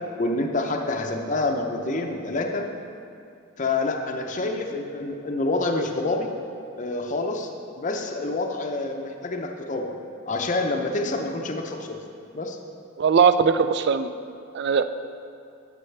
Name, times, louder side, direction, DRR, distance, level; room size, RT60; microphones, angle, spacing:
voice 1, 0.1-2.7 3.6-6.3 6.8-7.5 7.8-10.0 10.3-12.0 12.3-12.6, left 2 dB, 35° left, 3 dB, 0.6 m, -27 dB
voice 2, 13.0-14.1 14.5-14.8, right 6 dB, 55° right, 11 dB, 0.3 m, -19 dB
11.0 x 7.5 x 3.3 m, 2.5 s
head